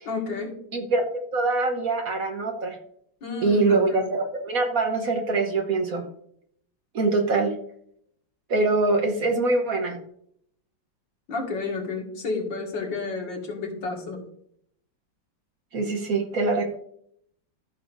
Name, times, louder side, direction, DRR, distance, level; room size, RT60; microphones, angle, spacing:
voice 1, 0.1-0.6 3.2-4.1 11.3-14.2, left 3 dB, 70° left, 0 dB, 2.7 m, -31 dB
voice 2, 0.7-2.8 3.4-6.1 6.9-7.6 8.5-10.0 15.7-16.8, right 3 dB, 55° right, 4 dB, 1.3 m, -24 dB
14.0 x 6.8 x 2.6 m, 0.67 s
omnidirectional pair, 2.1 m